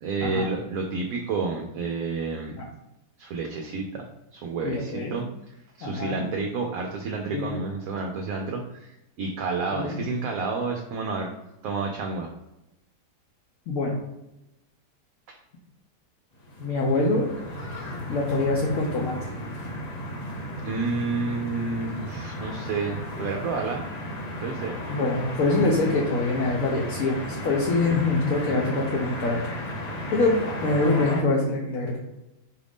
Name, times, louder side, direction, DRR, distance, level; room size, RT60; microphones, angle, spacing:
voice 1, 0.0-2.5 3.2-4.0 4.3-5.3 5.8-11.3 11.6-12.3 15.3-15.4 20.6-23.9 24.4-24.7, right 4 dB, 70° right, 2 dB, 0.9 m, -30 dB
voice 2, 4.6-5.2 5.8-6.2 7.3-7.6 9.7-10.0 13.7-14.0 16.6-17.3 18.1-19.2 24.9-29.5 30.1-32.0, left 2 dB, 60° left, -2 dB, 1.0 m, -24 dB
sound 1, 16.4-31.2, left 1 dB, 85° left, 0.3 m, -34 dB
4.8 x 2.5 x 3.4 m, 0.92 s
omnidirectional pair, 1.8 m